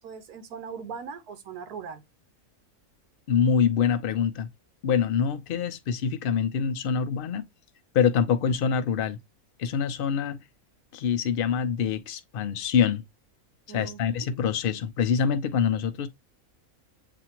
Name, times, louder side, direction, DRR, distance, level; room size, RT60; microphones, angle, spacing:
voice 1, 0.0-2.0 13.7-14.3, right 6 dB, 85° right, 1.2 m, -40 dB
voice 2, 3.3-4.5 4.8-7.5 7.9-9.2 9.6-10.4 10.9-13.0 13.7-16.1, left 7 dB, 60° left, 0.5 m, -25 dB
7.2 x 2.5 x 2.9 m
omnidirectional pair, 1.5 m